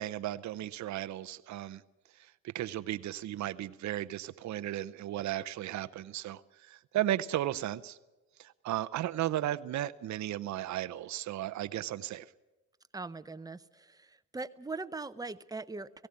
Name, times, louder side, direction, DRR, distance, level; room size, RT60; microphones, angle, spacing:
voice 1, 0.0-1.8 2.4-8.0 8.4-12.2, right 13 dB, 65° right, 13 dB, 0.7 m, -35 dB
voice 2, 12.9-16.1, right 3 dB, 10° right, 12 dB, 0.7 m, -41 dB
17.5 x 16.5 x 9.7 m, 1.1 s
cardioid pair, 90°, 30 cm